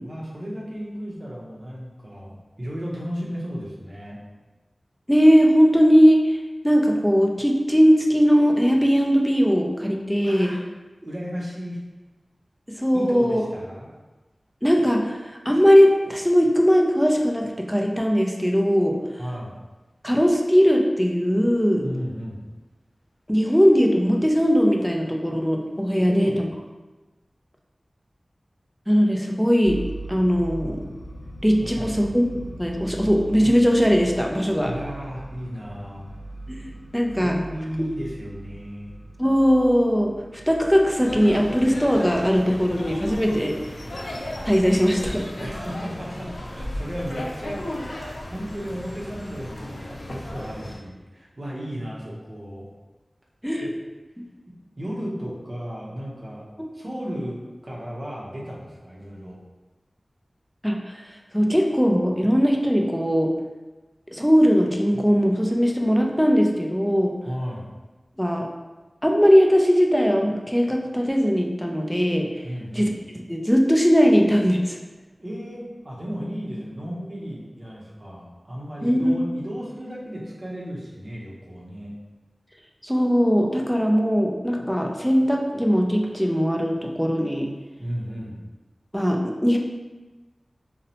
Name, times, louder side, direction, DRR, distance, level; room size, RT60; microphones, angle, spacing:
voice 1, 0.0-4.2 10.2-10.6 11.0-11.8 12.9-13.9 19.2-19.6 21.8-22.4 26.0-26.4 31.6-32.0 34.6-36.1 37.2-38.9 45.4-47.6 48.3-52.7 53.6-53.7 54.5-56.4 56.7-59.4 67.3-67.7 72.4-72.9 75.2-81.9 87.8-88.4, equal, 40° right, -5 dB, 0.7 m, -34 dB
voice 2, 5.1-6.4 6.6-10.5 12.8-13.4 14.6-19.0 20.0-21.8 23.3-26.5 28.9-29.8 30.1-30.9 31.4-34.7 36.5-37.4 37.8-37.9 39.2-40.1 40.5-43.6 44.4-45.3 53.4-53.7 56.6-56.7 60.6-61.0 61.3-63.3 64.1-67.2 68.2-68.5 69.0-72.3 72.7-74.8 78.8-79.2 82.8-87.5 88.9-89.6, equal, ahead, 1 dB, 0.3 m, -19 dB
sound 1, 29.6-44.9, right 1 dB, 50° left, 0.7 m, -40 dB
sound 2, 40.9-50.8, left 1 dB, 85° left, 0.4 m, -35 dB
2.7 x 2.0 x 2.7 m, 1.2 s
wide cardioid pair, 65°, 0 cm